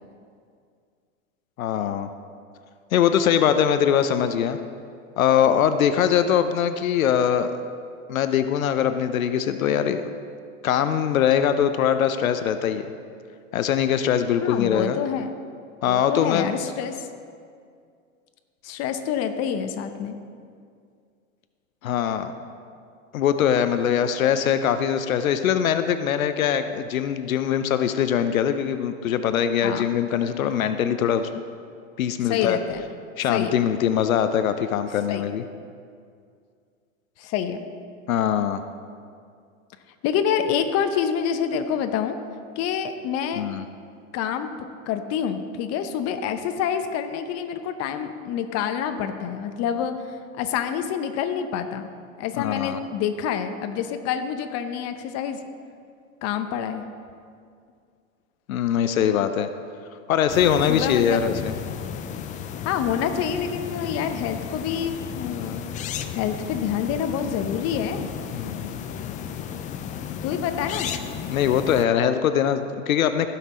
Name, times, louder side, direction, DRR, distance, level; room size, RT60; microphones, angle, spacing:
voice 1, 1.6-2.1 2.9-4.6 5.2-7.6 8.1-10.0 10.6-12.8 13.5-15.0 15.8-16.5 21.8-22.3 23.1-31.3 32.0-32.6 33.2-35.4 38.1-38.6 43.4-43.6 52.3-52.8 58.5-59.5 60.1-61.5 68.3-68.8 71.3-73.3, left 9 dB, 85° left, 10 dB, 0.7 m, -22 dB
voice 2, 14.4-15.3 15.9-17.1 18.6-20.2 29.6-29.9 32.3-32.8 33.3-33.5 35.1-35.3 37.2-37.6 40.0-42.2 42.6-43.5 44.1-44.5 44.9-51.9 52.2-55.4 56.2-56.8 60.7-61.2 62.6-65.6 66.1-68.1 70.2-70.9, left 8 dB, 40° left, 8 dB, 0.9 m, -27 dB
sound 1, 60.3-71.8, left 8 dB, 20° left, 0.4 m, -34 dB
15.5 x 5.8 x 4.2 m, 2.2 s
hypercardioid pair, 105°, 40 cm